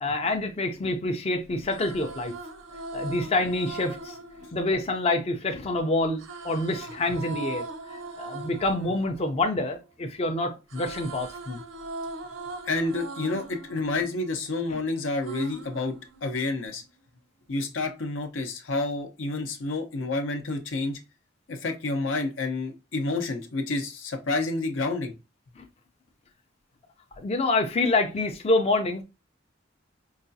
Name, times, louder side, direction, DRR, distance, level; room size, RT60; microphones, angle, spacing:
voice 1, 0.0-2.3 2.9-4.2 4.5-11.6 14.7-14.8 25.6-25.7 27.2-29.0, left 2 dB, 30° left, 0.4 m, -27 dB
sound 1, 1.5-5.6 6.2-10.2 10.5-14.7 15.2-16.7, right 2 dB, 80° right, 0.6 m, -40 dB
voice 2, 12.7-15.9 16.2-16.8 17.5-21.0 21.5-25.1, left 2 dB, 75° left, 0.7 m, -29 dB
4.8 x 2.3 x 2.6 m
head